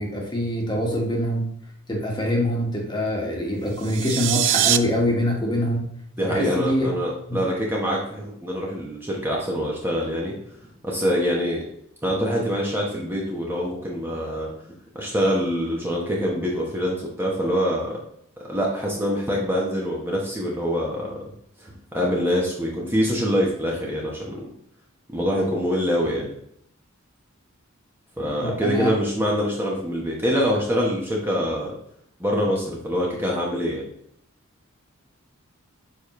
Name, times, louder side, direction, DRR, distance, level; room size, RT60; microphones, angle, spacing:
voice 1, 0.0-1.5 1.9-5.9 6.2-7.4 28.4-28.9, left 1 dB, 20° left, -1 dB, 1.5 m, -24 dB
sound 1, 3.7-4.8, right 13 dB, 60° right, 0.4 m, -22 dB
voice 2, 6.2-10.3 10.8-11.6 12.0-14.5 14.9-18.0 18.4-21.2 21.6-24.4 25.1-26.3 28.2-31.7 32.2-33.9, equal, 10° right, -3 dB, 1.1 m, -25 dB
7.2 x 5.1 x 3.1 m, 0.71 s
head